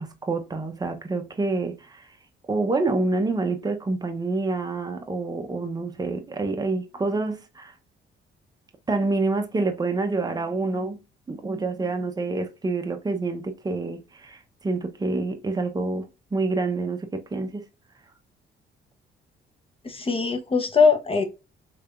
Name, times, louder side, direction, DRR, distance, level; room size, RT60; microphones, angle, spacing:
voice 1, 0.0-2.1 2.5-7.7 8.9-11.0 11.3-17.6, right 3 dB, 20° right, 0.7 m, -27 dB
voice 2, 19.8-21.2, left 5 dB, 30° left, 0.8 m, -21 dB
3.4 x 3.3 x 2.4 m
cardioid pair, 90°, 20 cm